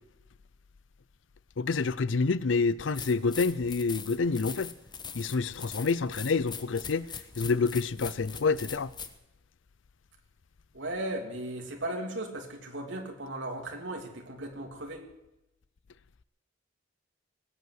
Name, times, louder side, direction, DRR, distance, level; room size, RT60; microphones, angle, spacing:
voice 1, 1.6-4.7 5.1-8.9, left 4 dB, 85° left, 0.6 m, -28 dB
sound 1, 2.9-9.2, left 6 dB, 25° left, 1.1 m, -42 dB
voice 2, 10.7-15.1, right 1 dB, 75° right, 3.0 m, -36 dB
19.0 x 8.4 x 7.9 m
head